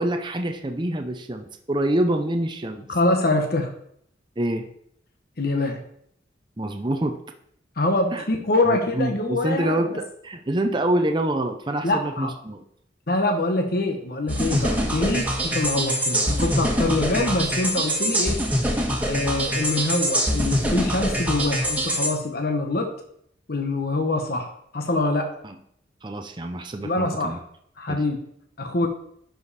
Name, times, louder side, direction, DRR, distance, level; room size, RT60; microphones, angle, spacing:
voice 1, 0.0-2.9 4.4-4.7 6.6-7.2 8.1-8.2 8.6-12.6 14.5-14.6 25.4-25.6 26.0-27.4 27.9-28.0, right 1 dB, 25° right, 5 dB, 0.7 m, -26 dB
voice 2, 2.9-3.7 5.4-5.8 7.8-10.0 11.8-12.3 13.1-18.4 19.1-22.9 23.5-24.5 24.7-25.3 26.8-27.4 27.8-28.2 28.6-28.9, left 2 dB, 55° left, 4 dB, 1.1 m, -24 dB
sound 1, 14.3-22.1, equal, 10° right, 1.5 m, -24 dB
11.0 x 5.1 x 4.2 m, 0.69 s
head